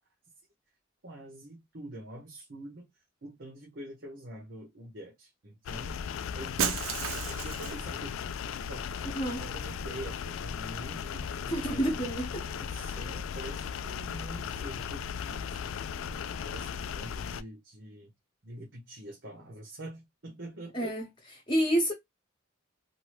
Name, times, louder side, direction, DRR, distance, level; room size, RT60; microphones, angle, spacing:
voice 1, 1.0-2.9 3.2-6.0 6.3-6.6 7.3-8.2 8.7-8.9 9.4-12.0 12.4-15.6 16.1-18.1 18.4-20.9, right 1 dB, 60° right, 0.9 m, -45 dB
sound 1, 5.6-17.4, left 7 dB, 80° left, 0.3 m, -37 dB
Shatter, 6.6-7.9, right 7 dB, 90° right, 0.5 m, -32 dB
voice 2, 11.5-12.5 20.7-21.0 21.5-21.9, right 1 dB, 25° left, 0.8 m, -28 dB
2.7 x 2.6 x 3.0 m
head